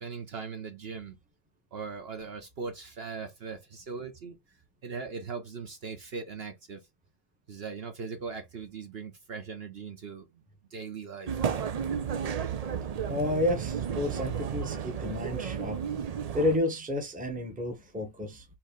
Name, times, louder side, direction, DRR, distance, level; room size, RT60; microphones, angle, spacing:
voice 1, 0.0-1.2 1.7-4.4 4.8-6.8 7.5-10.3 10.7-11.4, right 5 dB, 55° right, 1.0 m, -39 dB
sound 1, 11.3-16.6, right 7 dB, 70° right, 0.3 m, -33 dB
voice 2, 13.1-15.8 16.3-18.4, left 1 dB, 5° right, 0.8 m, -30 dB
4.6 x 3.1 x 3.6 m
omnidirectional pair, 1.4 m